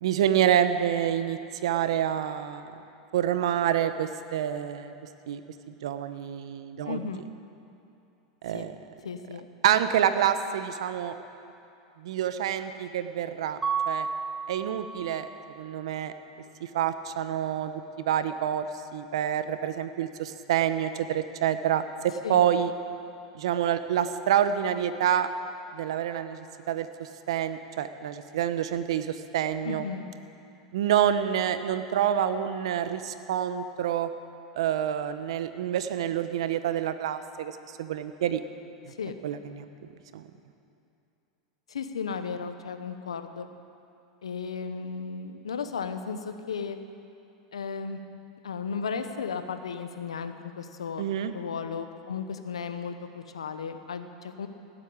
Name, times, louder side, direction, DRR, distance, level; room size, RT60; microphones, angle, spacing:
voice 1, 0.0-2.7 3.1-4.9 5.3-5.4 5.7-7.0 8.4-8.8 9.6-11.1 12.0-14.1 14.5-16.1 16.6-17.7 18.0-18.7 18.9-22.7 23.3-25.3 25.7-29.8 30.7-34.1 34.6-37.5 37.8-38.4 39.2-39.7 40.1-40.3 51.0-51.3, right 10 dB, 75° right, 11 dB, 0.9 m, -27 dB
voice 2, 6.8-7.3 8.5-8.7 9.0-9.5 22.2-22.4 29.6-30.1 39.0-39.2 41.7-43.5 44.2-46.8 47.5-48.0 48.4-51.0 51.3-54.5, left 5 dB, 90° left, 9 dB, 1.0 m, -35 dB
Mallet percussion, 13.6-15.4, right 5 dB, 20° right, 0.6 m, -32 dB
17.5 x 8.3 x 8.6 m, 2.8 s
hypercardioid pair, 100°, 3 cm